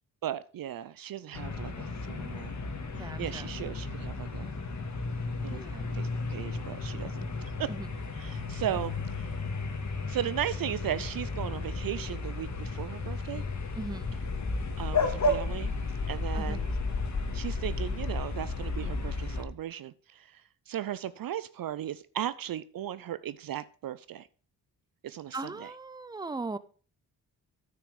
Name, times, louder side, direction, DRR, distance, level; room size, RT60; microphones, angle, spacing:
voice 1, 0.2-2.6 3.0-4.5 5.4-5.6 5.9-7.2 7.6-7.7 8.2-9.0 10.1-13.4 14.8-15.7 16.1-16.7 17.3-20.4 20.7-24.3 25.0-25.7, right 11 dB, 55° right, 0.6 m, -36 dB
sound 1, 1.3-19.4, left 3 dB, 40° left, 1.8 m, -33 dB
voice 2, 3.0-3.5 5.5-5.9 7.7-7.9 8.7-8.8 13.8-14.1 16.3-16.7 25.3-26.6, right 3 dB, 10° right, 0.7 m, -39 dB
10.5 x 6.1 x 5.3 m
supercardioid pair, 55°, 43 cm